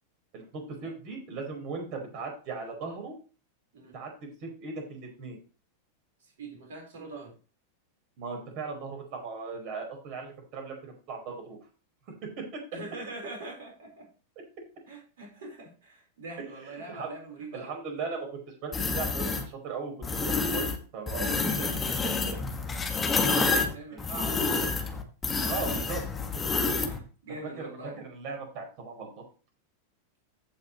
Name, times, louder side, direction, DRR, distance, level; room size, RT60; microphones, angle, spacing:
voice 1, 0.3-3.1 3.9-5.4 8.2-11.6 12.4-12.6 16.6-17.1 17.5-22.4 23.9-24.0 25.4-26.0 26.3-26.4 27.6-29.2, right 4 dB, 45° right, 2 dB, 4.7 m, -38 dB
voice 2, 6.2-7.3 12.7-14.0 14.9-17.8 21.5-21.6 22.9-24.8 25.6-25.8 26.8-27.9, right 2 dB, 60° right, 0 dB, 4.6 m, -43 dB
sound 1, 18.7-19.4 20.0-20.8 21.1-27.0, left 4 dB, 15° left, 1.7 m, -28 dB
15.5 x 6.0 x 3.1 m, 0.36 s
figure-of-eight pair, 90°, 0 cm